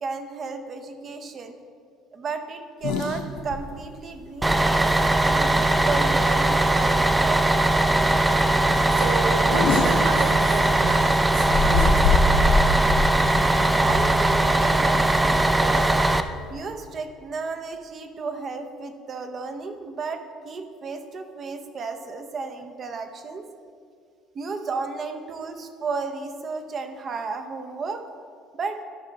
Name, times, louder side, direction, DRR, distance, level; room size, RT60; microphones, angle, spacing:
voice 1, 0.0-1.5 2.1-4.9 5.2-7.5 13.8-16.1 16.5-23.5 24.3-28.0 28.5-28.8, right 4 dB, 35° right, 7 dB, 0.7 m, -33 dB
sound 1, 2.8-3.6 4.0-4.1 4.4-4.5 5.7-6.0 6.3-6.5 7.0-7.1 7.4-7.5 7.9-8.1 8.6-10.9 11.3-16.6, left 3 dB, 80° left, 0.8 m, -26 dB
Bus, 4.4-16.2, right 2 dB, 10° right, 0.4 m, -20 dB
voice 2, 8.4-12.5, right 7 dB, 75° right, 7 dB, 0.4 m, -32 dB
12.0 x 5.3 x 4.0 m, 2.2 s
cardioid pair, 115°, 0 cm